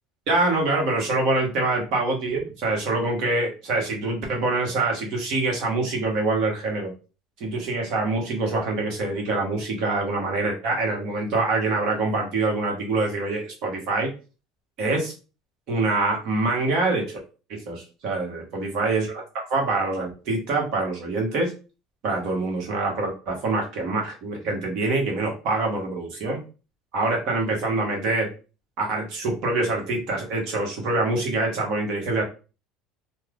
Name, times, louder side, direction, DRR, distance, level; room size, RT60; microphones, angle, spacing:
voice 1, 0.3-6.9 7.4-14.1 14.8-15.1 15.7-17.2 17.5-19.1 19.3-21.5 22.0-26.4 26.9-28.3 28.8-32.2, right 2 dB, 60° right, 1 dB, 1.3 m, -25 dB
2.6 x 2.4 x 3.4 m, 0.33 s
supercardioid pair, 105°, 0 cm